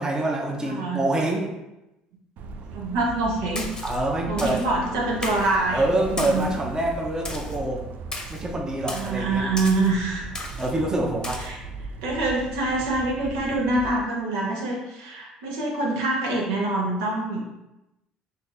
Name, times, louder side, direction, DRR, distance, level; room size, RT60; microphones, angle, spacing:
voice 1, 0.0-1.5 3.8-4.6 5.7-7.9 8.3-9.4 10.6-11.4, right 1 dB, 20° right, 0 dB, 0.7 m, -26 dB
voice 2, 0.6-1.0 2.4-3.7 4.3-6.5 8.9-10.3 11.4-11.6 12.0-17.4, right 2 dB, 85° right, -3 dB, 0.9 m, -25 dB
sound 1, 2.4-13.9, right 3 dB, 60° right, 0.3 m, -38 dB
Splash splatter, 3.6-4.0 4.4-4.7 5.2-5.5 6.2-6.6 7.3-7.6 8.1-8.4 8.9-9.1 9.6-9.9 10.4-10.7 11.2-11.5, left 2 dB, 20° left, 0.8 m, -35 dB
2.7 x 2.7 x 3.8 m, 0.95 s
supercardioid pair, 80°, 3 cm